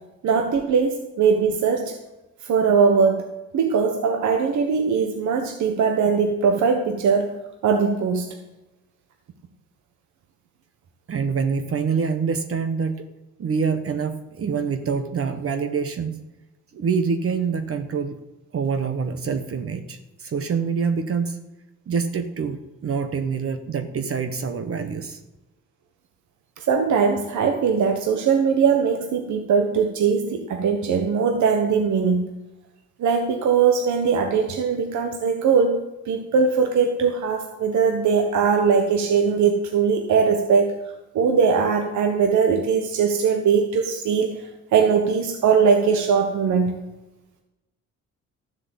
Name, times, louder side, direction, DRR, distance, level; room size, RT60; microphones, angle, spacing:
voice 1, 0.2-2.0 2.4-3.3 3.5-7.3 7.6-8.3 26.6-32.3 33.0-40.7 41.1-46.7, right 6 dB, 70° right, 5 dB, 1.3 m, -20 dB
voice 2, 11.1-13.1 13.4-16.2 16.7-18.2 18.5-21.4 21.9-25.2, right 5 dB, 50° right, 8 dB, 1.1 m, -26 dB
13.0 x 7.6 x 8.1 m, 1.0 s
cardioid pair, 90°, 30 cm